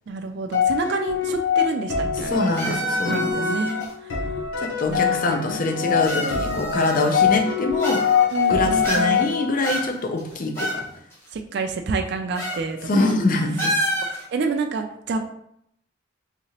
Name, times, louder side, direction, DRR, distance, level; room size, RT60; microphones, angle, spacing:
voice 1, 0.1-2.8 3.1-4.1 4.9-6.6 8.3-9.3 11.3-13.2 14.1-15.2, right 4 dB, 55° right, 5 dB, 0.3 m, -29 dB
sound 1, 0.5-9.8, left 7 dB, 90° left, 0.9 m, -24 dB
voice 2, 2.2-3.4 4.6-8.0 8.5-10.9 12.9-13.8, left 2 dB, 45° left, 4 dB, 0.5 m, -24 dB
sound 2, 2.6-3.9 4.9-5.0 6.0-7.3 7.8-8.5 8.8-9.3 9.6-10.8 11.1-11.2 12.4-12.6 12.9-13.1 13.6-14.2, right 1 dB, 10° left, 1.0 m, -28 dB
3.6 x 2.9 x 2.9 m, 0.72 s
head